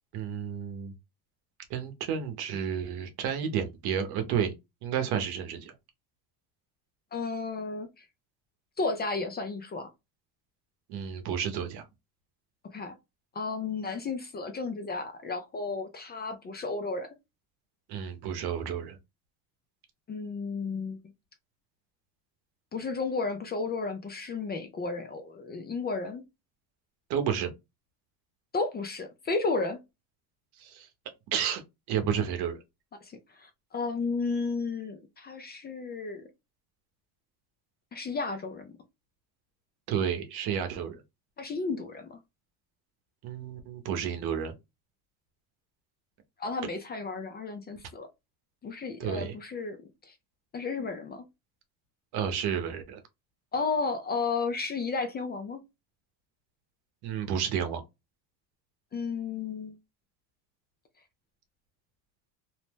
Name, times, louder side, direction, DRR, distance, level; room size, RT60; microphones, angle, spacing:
voice 1, 0.1-0.9 1.7-4.5 4.8-5.7 10.9-11.8 17.9-19.0 27.1-27.5 30.6-30.9 31.3-31.6 31.9-32.6 39.9-41.0 43.2-44.5 49.0-49.4 52.1-53.0 57.0-57.8, right 8 dB, 60° right, 0.9 m, -31 dB
voice 2, 7.1-8.0 8.8-9.9 12.7-12.9 13.3-17.1 20.1-21.0 22.7-26.2 28.5-29.8 33.0-36.3 37.9-38.7 41.4-42.2 46.4-48.1 48.6-49.8 50.1-50.2 50.5-51.2 53.5-55.6 58.9-59.8, left 4 dB, 25° left, 0.4 m, -33 dB
2.7 x 2.0 x 3.3 m
supercardioid pair, 110°, 43 cm